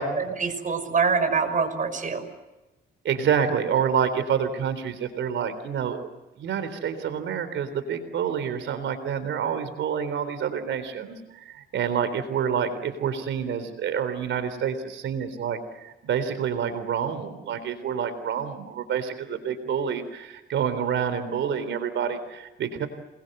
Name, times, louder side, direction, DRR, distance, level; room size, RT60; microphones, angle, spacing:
voice 1, 0.2-2.2, right 5 dB, 40° right, 8 dB, 6.0 m, -25 dB
voice 2, 3.0-6.1 6.4-22.9, right 7 dB, 70° right, 11 dB, 3.8 m, -28 dB
28.5 x 22.0 x 8.0 m, 1.1 s
cardioid pair, 90°, 20 cm